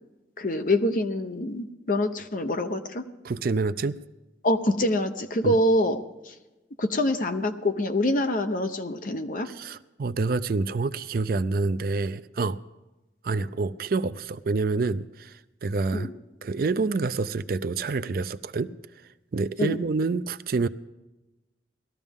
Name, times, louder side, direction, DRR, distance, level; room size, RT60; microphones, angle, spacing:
voice 1, 0.4-3.0 4.4-6.3 6.8-9.5 15.9-16.1 19.6-19.8, left 1 dB, 50° left, 8 dB, 0.9 m, -25 dB
voice 2, 3.2-4.0 5.4-5.6 9.4-12.6 13.2-16.1 16.4-18.7 19.3-20.7, right 3 dB, 55° right, 14 dB, 0.4 m, -27 dB
19.0 x 13.5 x 3.6 m, 1.1 s
head